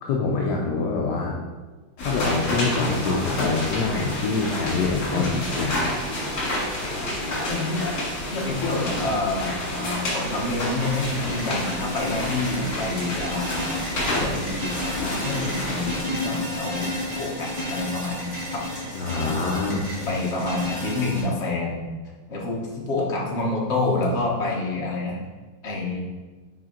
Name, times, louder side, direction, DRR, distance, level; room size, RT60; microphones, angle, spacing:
voice 1, 0.0-1.4 2.0-5.3 5.6-6.0 6.3-6.4 18.9-19.9, left 4 dB, 65° left, -1 dB, 1.2 m, -25 dB
sound 1, 2.0-16.0, left 1 dB, 80° left, 2.9 m, -29 dB
voice 2, 7.5-7.8 8.3-13.7 14.1-18.7 19.1-19.3 20.1-21.9 22.3-25.2 25.6-26.0, left 2 dB, 40° left, -3 dB, 1.3 m, -28 dB
sound 2, 10.8-21.2, left 1 dB, 25° right, 2.1 m, -32 dB
6.4 x 4.9 x 4.4 m, 1.3 s
omnidirectional pair, 2.3 m